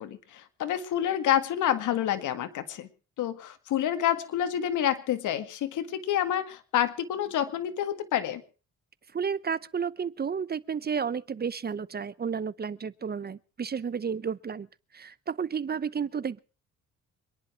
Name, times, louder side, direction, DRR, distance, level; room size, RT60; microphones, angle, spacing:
voice 1, 0.0-2.9 3.2-8.4, left 10 dB, 80° left, 2.0 m, -28 dB
voice 2, 9.1-14.7 14.9-16.4, right 6 dB, 30° right, 0.8 m, -32 dB
26.5 x 10.5 x 4.5 m
cardioid pair, 90°, 30 cm